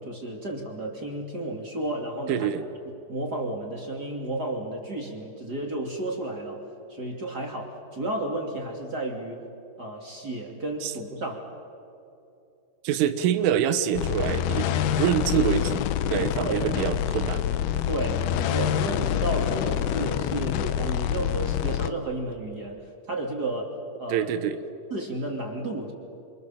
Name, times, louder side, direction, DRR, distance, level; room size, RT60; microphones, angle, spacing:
voice 1, 0.0-2.5 3.1-6.6 6.9-9.4 9.8-11.5 16.4-16.6 17.9-24.3 24.9-25.9, right 2 dB, 25° right, 0 dB, 2.4 m, -32 dB
voice 2, 2.3-2.6 10.8-10.9 12.8-17.4 24.1-24.6, right 9 dB, 85° right, 10 dB, 3.8 m, -26 dB
sound 1, 14.0-21.9, left 11 dB, 80° left, 2.3 m, -26 dB
29.0 x 26.5 x 7.4 m, 2.7 s
omnidirectional pair, 5.6 m